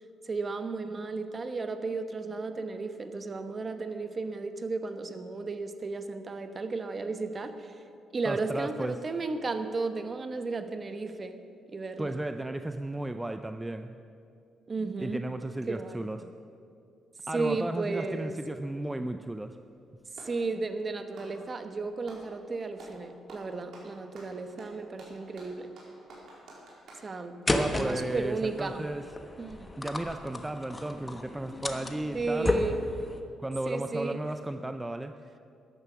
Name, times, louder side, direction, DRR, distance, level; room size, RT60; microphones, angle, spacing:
voice 1, 0.2-7.7 8.1-11.3 11.7-12.2 14.7-15.2 15.7-16.1 17.3-18.4 20.2-25.7 27.0-27.4 27.7-28.8 29.4-29.7 32.1-32.8 33.7-34.2, right 3 dB, 35° right, 9 dB, 1.0 m, -34 dB
voice 2, 8.2-9.0 12.0-13.9 15.0-16.2 17.3-19.6 27.5-29.0 29.8-32.7 33.4-35.1, right 1 dB, 10° right, 8 dB, 0.5 m, -34 dB
Clapping, 19.6-20.4 21.0-22.3 22.8-23.0 23.3-27.1, right 2 dB, 70° right, 3.9 m, -50 dB
sound 1, 27.5-33.2, left 2 dB, 20° left, 1.2 m, -33 dB
14.0 x 10.5 x 6.1 m, 2.5 s
cardioid pair, 90°, 0 cm